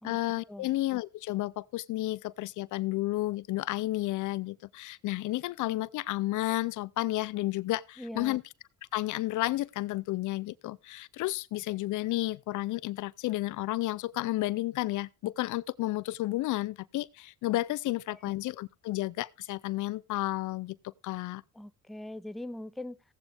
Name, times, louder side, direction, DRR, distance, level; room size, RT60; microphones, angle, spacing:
voice 1, 0.0-8.4 8.9-20.8 21.0-21.4, left 17 dB, 75° left, 0.5 m, -32 dB
voice 2, 8.0-8.4 18.1-18.3 21.5-23.0, left 1 dB, ahead, 0.5 m, -41 dB
16.5 x 8.1 x 3.4 m
cardioid pair, 90°, 30 cm